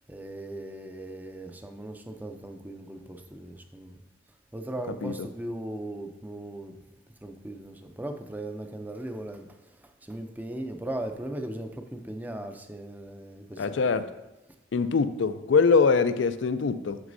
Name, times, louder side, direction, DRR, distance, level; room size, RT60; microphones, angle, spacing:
voice 1, 0.1-4.0 4.5-6.8 7.2-9.5 9.8-13.7, right 1 dB, 10° right, 0.4 m, -38 dB
voice 2, 13.6-14.1 14.7-17.0, left 4 dB, 80° left, 0.4 m, -23 dB
7.2 x 6.2 x 2.6 m
head